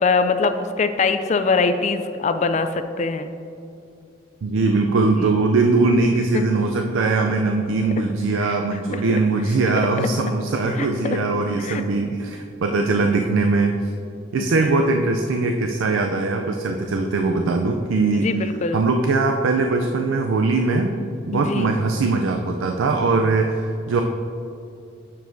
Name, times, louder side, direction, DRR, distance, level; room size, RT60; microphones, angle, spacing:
voice 1, 0.0-3.3 6.3-6.4 8.9-9.2 10.0-10.1 10.8-11.2 11.6-11.8 14.4-14.7 18.1-18.8 21.3-21.7, left 4 dB, 35° left, 9 dB, 0.3 m, -23 dB
voice 2, 4.4-13.9 14.3-18.3 18.7-20.9 21.3-24.0, right 3 dB, 80° right, 4 dB, 0.4 m, -21 dB
9.1 x 7.0 x 2.6 m, 2.6 s
head